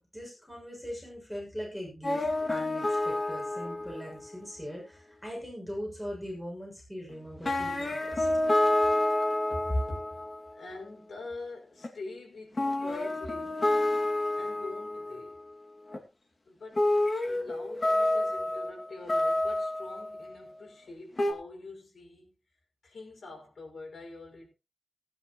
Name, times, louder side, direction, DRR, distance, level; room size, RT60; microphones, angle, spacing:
voice 1, 0.0-8.3, equal, 5° left, 6.6 m, -40 dB
sound 1, 2.0-4.3 7.1-7.2 7.4-10.5 11.8-11.9 12.6-15.4 15.9-16.0 16.8-20.3 21.2-21.3, left 1 dB, 40° left, 2.3 m, -28 dB
voice 2, 9.5-10.2 10.5-13.7 14.3-15.4 16.4-16.8 17.2-22.3 22.8-24.5, left 2 dB, 80° left, 5.8 m, -45 dB
18.5 x 10.0 x 3.1 m
wide cardioid pair, 115°, 0 cm